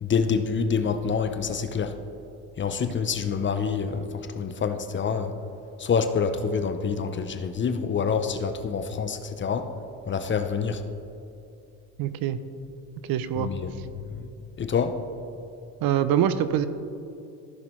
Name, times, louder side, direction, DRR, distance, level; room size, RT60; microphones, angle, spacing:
voice 1, 0.0-2.0 2.6-5.4 5.8-9.7 10.1-10.8 13.4-14.3 14.6-15.0, left 6 dB, 30° left, 9 dB, 0.6 m, -27 dB
voice 2, 12.0-12.4 13.1-13.5 15.8-16.7, right 10 dB, 65° right, 13 dB, 0.6 m, -24 dB
14.5 x 5.9 x 3.1 m, 2.7 s
supercardioid pair, 90°, 40 cm